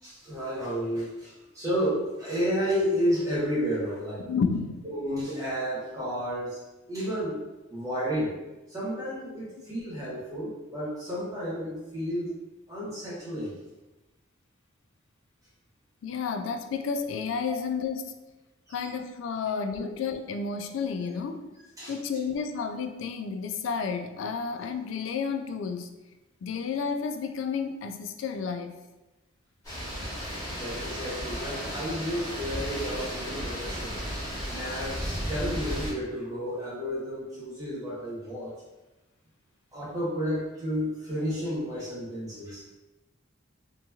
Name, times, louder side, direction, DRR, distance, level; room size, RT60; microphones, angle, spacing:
voice 1, 0.0-4.2 4.8-6.6 6.9-7.4 7.7-8.3 8.7-12.3 12.7-13.5 18.7-18.9 21.8-22.2 30.5-34.0 34.5-38.5 39.7-42.6, equal, 20° right, -8 dB, 1.0 m, -31 dB
voice 2, 4.2-4.9 16.0-18.2 18.7-21.5 21.9-25.9 26.4-28.7, left 5 dB, 75° left, 7 dB, 0.3 m, -31 dB
sound 1, 29.6-35.9, equal, 20° left, 1.4 m, -34 dB
2.9 x 2.7 x 2.3 m, 1.1 s
head